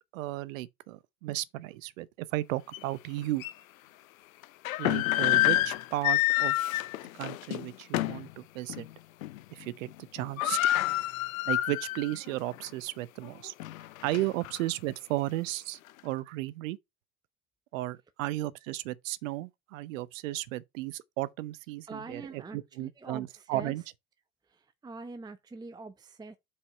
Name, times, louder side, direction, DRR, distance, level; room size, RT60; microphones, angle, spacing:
voice 1, 0.1-3.4 4.8-6.6 7.2-8.9 9.5-10.6 11.5-13.5 14.0-16.8 17.7-23.8, right 17 dB, 65° right, 0.7 m, -34 dB
sound 1, 2.7-2.8 3.4-3.5 4.4-8.3 8.7-8.9 9.2-9.6 9.9-10.0 10.2-12.1 12.5-12.6 13.2-14.6, left 15 dB, 70° left, 0.7 m, -28 dB
voice 2, 21.9-23.7 24.5-26.4, right 3 dB, 10° right, 0.7 m, -44 dB
5.5 x 4.8 x 5.5 m
figure-of-eight pair, 65°, 42 cm